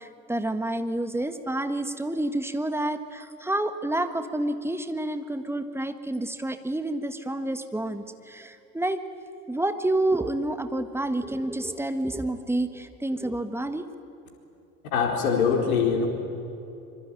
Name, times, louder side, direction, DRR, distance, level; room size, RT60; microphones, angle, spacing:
voice 1, 0.0-9.0 9.5-13.8, right 1 dB, 5° right, 9 dB, 1.6 m, -29 dB
voice 2, 14.9-16.1, left 6 dB, 70° left, 3 dB, 4.5 m, -23 dB
25.0 x 24.5 x 9.1 m, 2.8 s
figure-of-eight pair, 75°, 44 cm